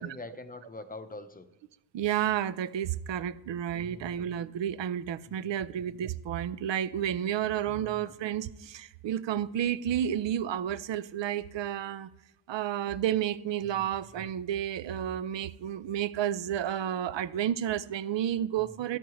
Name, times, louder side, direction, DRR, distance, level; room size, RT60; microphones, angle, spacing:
voice 1, 0.0-1.5 3.7-4.1 5.3-5.5 7.6-8.1 13.7-13.9, left 2 dB, 20° left, 0.8 m, -44 dB
voice 2, 1.9-12.1 12.5-19.0, right 10 dB, 65° right, 0.6 m, -31 dB
13.0 x 9.3 x 3.1 m
cardioid pair, 90°, 48 cm